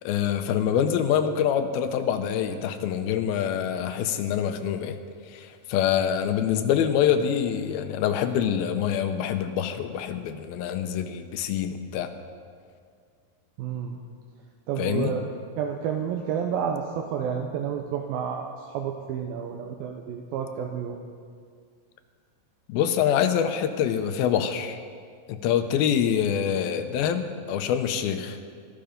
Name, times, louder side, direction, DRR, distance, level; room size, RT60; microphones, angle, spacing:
voice 1, 0.0-5.0 5.3-12.1 14.8-15.1 22.7-24.8 25.3-28.4, left 9 dB, 85° left, 8 dB, 2.6 m, -25 dB
voice 2, 13.6-14.0 14.7-18.5 18.7-21.0, right 7 dB, 85° right, 2 dB, 2.5 m, -30 dB
13.5 x 13.0 x 5.2 m, 2.1 s
omnidirectional pair, 4.2 m